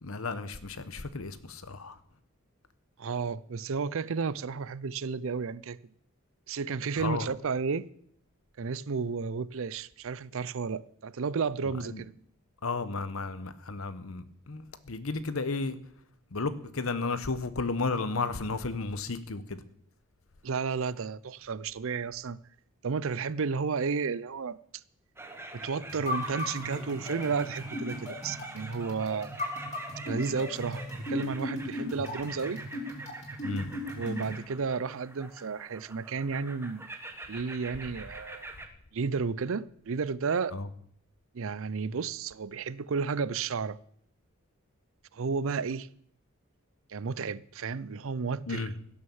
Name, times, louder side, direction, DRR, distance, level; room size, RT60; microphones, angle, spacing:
voice 1, 0.0-2.0 7.0-7.3 11.9-12.0 12.6-15.8 16.3-19.6 33.4-33.7 40.5-40.7 48.5-48.7, left 3 dB, 70° left, 1.0 m, -33 dB
voice 2, 3.0-5.8 6.5-7.9 8.6-12.1 20.4-22.4 22.8-24.6 25.5-29.3 30.0-30.8 31.1-32.6 34.0-36.9 37.3-38.5 38.9-40.6 41.3-43.8 45.1-45.9 46.9-48.7, right 5 dB, 65° right, 0.5 m, -32 dB
sound 1, 25.2-38.7, right 2 dB, 10° right, 1.2 m, -45 dB
sound 2, 25.9-34.4, left 1 dB, 35° left, 3.5 m, -37 dB
16.5 x 6.5 x 7.1 m
head